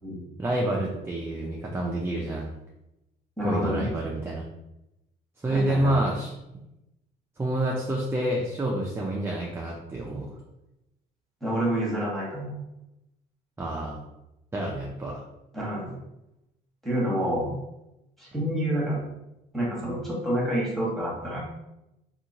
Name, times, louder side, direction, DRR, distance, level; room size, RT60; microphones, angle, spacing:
voice 1, 0.4-2.5 3.4-4.4 5.4-6.3 7.4-10.3 13.6-14.0 14.5-15.2, right 1 dB, 15° right, -2 dB, 0.4 m, -28 dB
voice 2, 3.4-3.9 5.5-5.9 11.4-12.5 15.5-15.9 16.8-17.5 18.2-19.0 19.5-21.4, equal, ahead, -6 dB, 1.3 m, -28 dB
2.8 x 2.7 x 2.7 m, 0.91 s
cardioid pair, 110°, 17 cm